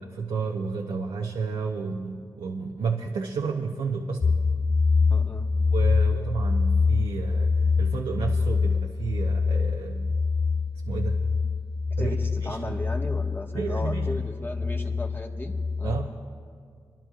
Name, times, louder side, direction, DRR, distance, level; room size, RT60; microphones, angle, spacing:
voice 1, 0.2-4.4 5.7-10.1 10.9-11.2 12.0-12.8 13.5-14.2 15.8-16.2, right 5 dB, 85° right, 0 dB, 0.8 m, -31 dB
sound 1, 4.2-16.1, left 4 dB, 50° left, 0.6 m, -25 dB
voice 2, 5.1-5.5 12.0-15.5 15.8-16.0, left 2 dB, 25° left, 2 dB, 1.4 m, -36 dB
29.5 x 11.0 x 2.4 m, 2.1 s
cardioid pair, 50°, 9 cm